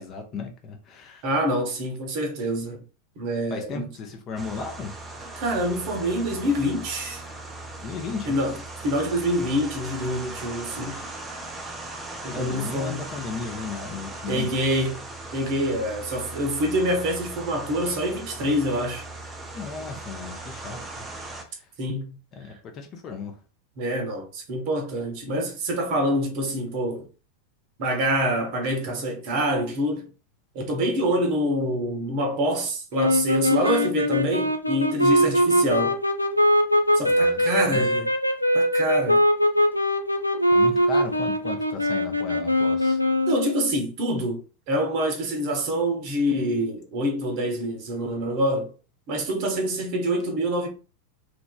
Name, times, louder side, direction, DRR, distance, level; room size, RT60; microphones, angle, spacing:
voice 1, 0.0-1.2 3.5-5.0 7.8-8.4 12.3-14.5 19.5-21.1 21.3-21.7 22.3-23.4 37.0-37.9 40.5-43.0, left 4 dB, 30° left, 0.6 m, -36 dB
voice 2, 1.2-2.8 3.2-3.9 5.4-7.2 8.3-8.5 8.8-11.0 12.2-13.0 14.3-15.0 15.3-19.0 21.8-22.2 23.8-27.1 27.8-30.1 30.5-36.0 36.9-38.1 38.5-39.2 43.3-44.4 44.7-48.7 49.1-50.7, equal, 45° right, 0.8 m, -26 dB
sound 1, 4.4-21.4, right 2 dB, 15° right, 0.5 m, -38 dB
sound 2, 32.9-43.7, equal, 90° left, 0.3 m, -22 dB
2.9 x 2.5 x 2.2 m
figure-of-eight pair, 90°, 0 cm